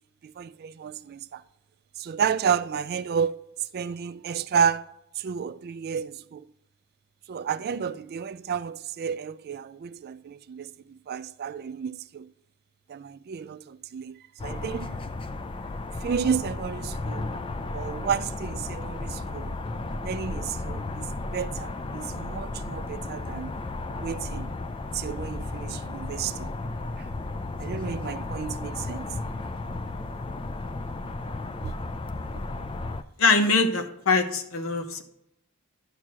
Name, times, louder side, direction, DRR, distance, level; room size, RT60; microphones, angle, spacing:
voice 1, 0.2-1.4 2.0-3.4 3.7-4.9 5.1-6.5 7.3-12.3 12.9-15.0 16.0-17.3 17.7-19.5 20.0-23.5 23.9-24.5 24.9-26.5 27.0-27.1 27.6-29.1 31.6-31.7, right 7 dB, 45° right, 0.3 m, -31 dB
sound 1, 14.4-33.0, left 2 dB, 25° left, 0.4 m, -34 dB
voice 2, 33.2-35.0, left 3 dB, 65° left, 1.0 m, -23 dB
11.0 x 4.5 x 6.1 m
head